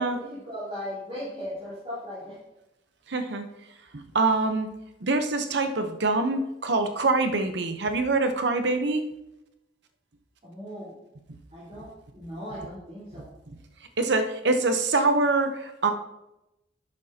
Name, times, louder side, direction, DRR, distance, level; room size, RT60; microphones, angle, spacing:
voice 1, 0.0-2.4 10.4-10.9 11.5-11.9 12.1-13.3, equal, 30° right, -11 dB, 4.1 m, -37 dB
voice 2, 3.1-3.4 3.9-4.7 5.0-9.0 14.0-15.9, right 3 dB, 65° right, 6 dB, 0.9 m, -24 dB
11.5 x 9.8 x 2.9 m, 0.92 s
head